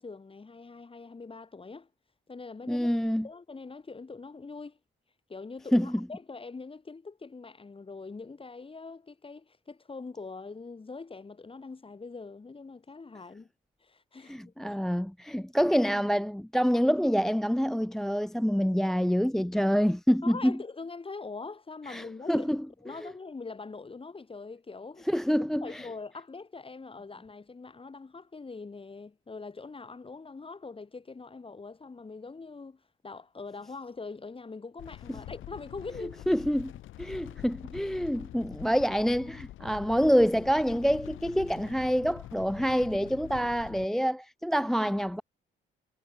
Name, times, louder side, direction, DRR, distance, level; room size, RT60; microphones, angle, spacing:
voice 1, 0.0-1.9 2.3-2.9 3.2-4.8 5.3-13.5 13.8-14.8 20.2-22.5 22.8-25.1 25.6-36.2, left 4 dB, 25° left, 6.0 m, -43 dB
voice 2, 2.7-3.3 5.7-6.0 14.3-20.6 21.9-22.6 23.0-23.1 25.1-25.9 36.3-36.7 37.0-45.2, equal, ahead, 0.4 m, -26 dB
sound 1, 34.8-43.9, left 14 dB, 85° left, 3.7 m, -45 dB
cardioid pair, 90°, 20 cm